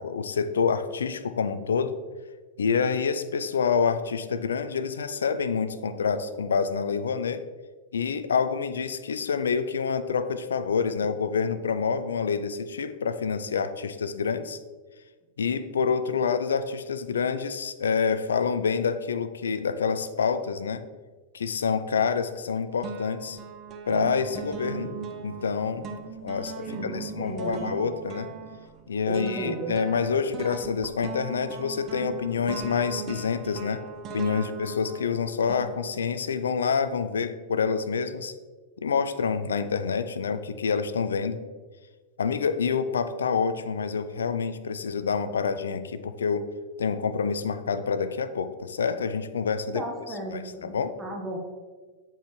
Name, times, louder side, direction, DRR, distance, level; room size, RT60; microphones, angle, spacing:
voice 1, 0.0-2.0 2.6-7.4 7.9-14.6 15.4-20.8 21.3-23.4 23.9-24.9 25.2-25.9 26.2-28.3 28.9-33.8 34.1-38.3 38.8-41.4 42.2-46.5 46.8-49.8 50.3-50.9, left 6 dB, 80° left, 12 dB, 0.4 m, -27 dB
sound 1, 22.0-22.5 22.8-36.2, right 6 dB, 35° right, 0.7 m, -39 dB
voice 2, 26.6-27.7 29.1-29.8 49.7-51.4, right 1 dB, 10° right, -1 dB, 1.2 m, -35 dB
7.9 x 4.4 x 3.1 m, 1.4 s
hypercardioid pair, 105°, 0 cm